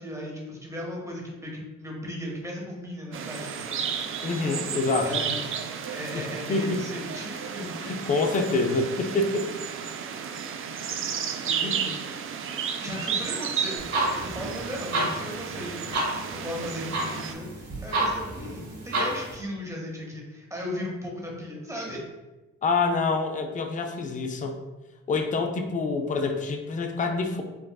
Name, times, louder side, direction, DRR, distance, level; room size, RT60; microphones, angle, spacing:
voice 1, 0.0-3.8 5.0-5.5 5.9-7.9 11.1-12.0 12.8-22.0, left 1 dB, 10° right, -2 dB, 0.9 m, -37 dB
sound 1, 3.1-17.3, right 7 dB, 45° right, 0.4 m, -33 dB
voice 2, 4.2-5.3 6.1-6.2 6.5-6.8 7.8-9.5 11.6-11.9 22.6-24.6 25.1-27.4, left 3 dB, 25° left, 4 dB, 0.4 m, -26 dB
sound 2, 13.8-19.4, right 1 dB, 60° right, 1.4 m, -31 dB
4.6 x 2.4 x 2.3 m, 1.1 s
cardioid pair, 90°, 30 cm